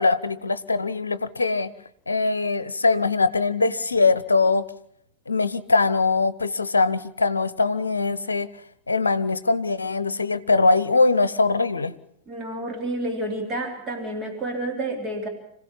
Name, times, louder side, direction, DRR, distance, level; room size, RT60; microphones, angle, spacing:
voice 1, 0.0-1.7 2.1-4.6 5.3-8.5 8.9-11.9, left 3 dB, 75° left, 16 dB, 0.8 m, -22 dB
voice 2, 12.3-15.3, right 1 dB, 25° right, 2 dB, 3.3 m, -29 dB
26.5 x 16.0 x 7.2 m, 0.73 s
figure-of-eight pair, 90°, 0 cm